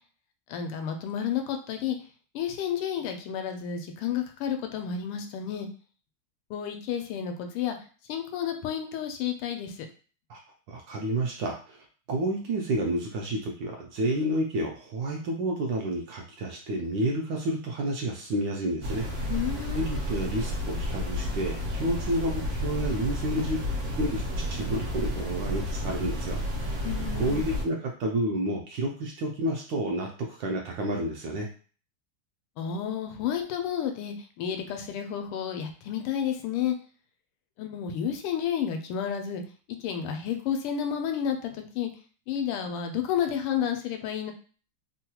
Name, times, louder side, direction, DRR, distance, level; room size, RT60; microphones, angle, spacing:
voice 1, 0.5-2.0 2.3-5.7 6.5-7.8 8.1-9.7 19.3-19.9 26.8-27.5 32.6-36.7 37.6-39.4 39.8-41.9 42.3-44.3, left 8 dB, 85° left, 5 dB, 1.5 m, -31 dB
voice 2, 10.7-19.1 19.7-23.6 24.0-31.5, right 1 dB, 75° right, 0 dB, 1.1 m, -30 dB
sound 1, 18.8-27.6, equal, 55° right, 0.8 m, -31 dB
3.6 x 2.2 x 2.8 m, 0.39 s
omnidirectional pair, 2.4 m